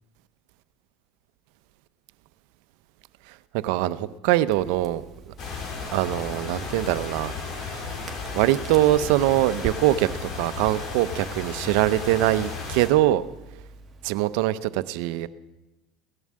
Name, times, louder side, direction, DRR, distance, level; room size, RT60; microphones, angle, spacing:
voice 1, 3.3-5.3 5.9-7.3 7.7-7.9 8.3-13.2 14.0-15.3, right 15 dB, 75° right, 0.7 m, -23 dB
Crackle, 4.5-14.1, right 5 dB, 30° right, 2.0 m, -45 dB
sound 1, 5.4-12.9, left 4 dB, 50° left, 3.7 m, -34 dB
17.5 x 11.0 x 7.6 m
supercardioid pair, 105°, 0 cm